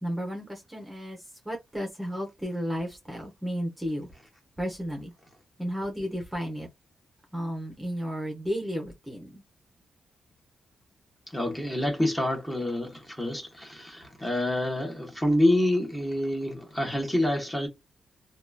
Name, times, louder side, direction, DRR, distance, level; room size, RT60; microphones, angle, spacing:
voice 1, 0.0-1.2 1.4-4.1 4.6-5.1 5.6-6.7 7.3-9.4, equal, 10° right, 1.0 m, -33 dB
voice 2, 11.3-17.7, left 1 dB, 10° left, 1.2 m, -27 dB
2.9 x 2.4 x 2.3 m
cardioid pair, 105°, 0 cm